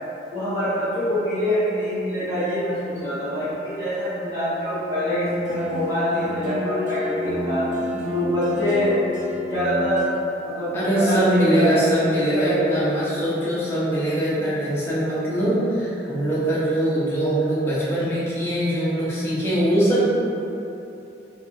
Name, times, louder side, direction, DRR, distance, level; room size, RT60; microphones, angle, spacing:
voice 1, 0.3-7.7 8.1-9.0 9.5-10.1 10.4-12.8, equal, 20° right, -16 dB, 1.3 m, -25 dB
sound 1, 5.1-10.0, left 1 dB, 45° right, 0.9 m, -29 dB
voice 2, 10.7-20.1, right 1 dB, 15° left, -9 dB, 0.7 m, -22 dB
4.0 x 2.4 x 2.8 m, 2.9 s
head